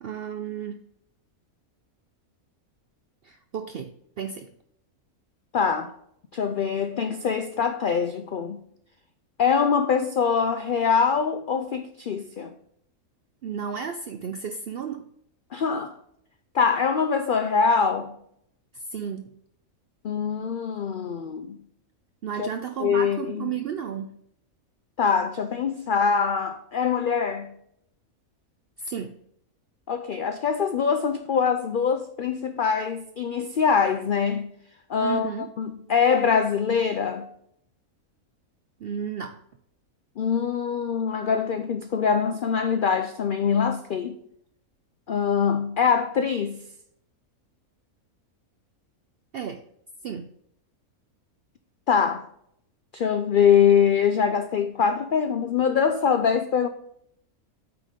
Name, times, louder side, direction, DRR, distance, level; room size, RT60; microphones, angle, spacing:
voice 1, 0.0-0.8 3.2-4.5 13.4-15.1 18.7-19.3 22.2-24.1 28.8-29.1 35.0-35.5 38.8-39.4 49.3-49.6 50.0-50.3, right 7 dB, 70° right, 0.5 m, -33 dB
voice 2, 5.5-5.9 6.3-8.6 9.4-12.5 15.5-15.9 16.5-18.1 20.0-21.6 22.4-22.5 22.8-23.5 25.0-27.5 29.9-34.5 34.9-37.3 40.2-44.2 45.1-46.6 51.9-52.3 52.9-56.7, left 6 dB, 85° left, 0.4 m, -23 dB
8.8 x 3.9 x 5.0 m
omnidirectional pair, 1.5 m